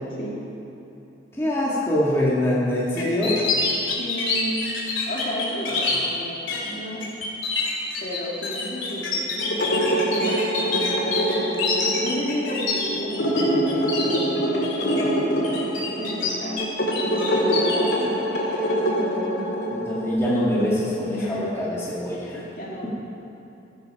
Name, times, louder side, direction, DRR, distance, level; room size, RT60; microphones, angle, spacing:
voice 1, 1.3-3.4 19.7-22.5, left 1 dB, 15° left, -7 dB, 1.6 m, -24 dB
sound 1, 3.0-6.0 6.5-6.7 7.0-13.4 13.7-14.2 14.6-15.0 15.4-16.6 16.9-17.9, left 4 dB, 85° left, 2.4 m, -27 dB
voice 2, 3.7-4.6 5.0-7.1 8.0-11.0 12.0-16.6 17.1-18.7 19.0-19.2 21.1-21.5 22.5-22.9, equal, 45° left, -4 dB, 2.2 m, -33 dB
sound 2, 9.4-20.2, right 1 dB, 65° left, 2.1 m, -25 dB
14.0 x 8.0 x 5.7 m, 2.9 s
head